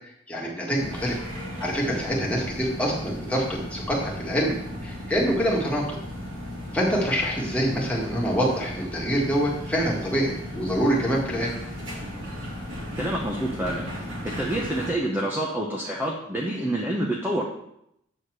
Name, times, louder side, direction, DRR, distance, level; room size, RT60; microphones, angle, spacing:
voice 1, 0.3-1.2 1.6-4.6 4.8-6.0 6.7-11.5, equal, 5° left, -4 dB, 1.8 m, -25 dB
sound 1, 0.7-14.9, equal, 75° right, 2.6 m, -36 dB
voice 2, 13.0-13.9 14.4-17.4, right 1 dB, 10° right, -3 dB, 0.8 m, -27 dB
8.4 x 4.2 x 6.3 m, 0.76 s
head